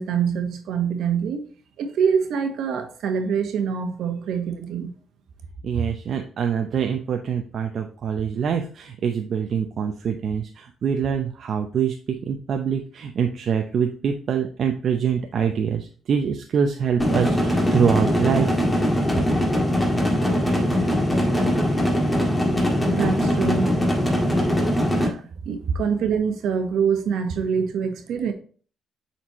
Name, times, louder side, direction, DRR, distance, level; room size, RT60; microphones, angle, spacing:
voice 1, 0.0-1.4 1.8-5.0 23.0-23.7 25.0-28.3, right 6 dB, 75° right, 1.2 m, -25 dB
voice 2, 5.6-18.6, right 7 dB, 60° right, 0.7 m, -25 dB
sound 1, 17.0-25.1, equal, 10° left, 1.7 m, -21 dB
7.3 x 4.3 x 3.0 m
cardioid pair, 90°, 0 cm